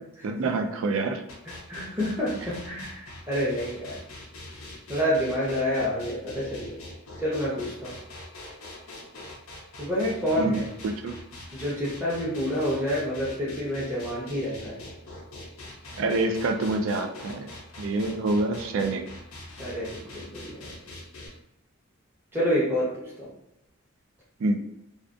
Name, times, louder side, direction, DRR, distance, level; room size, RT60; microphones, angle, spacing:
voice 1, 0.2-1.2 10.4-11.2 16.0-17.5 17.8-19.1 24.4-24.6, right 2 dB, 70° right, 5 dB, 0.3 m, -26 dB
sound 1, 1.3-21.3, left 1 dB, 85° left, 0.6 m, -43 dB
voice 2, 1.7-4.0 4.9-6.8 7.2-7.9 9.8-10.7 11.5-14.8 19.6-20.7 22.3-22.9 23.2-23.3, equal, 10° right, -8 dB, 0.7 m, -28 dB
2.3 x 2.3 x 2.5 m, 0.83 s
head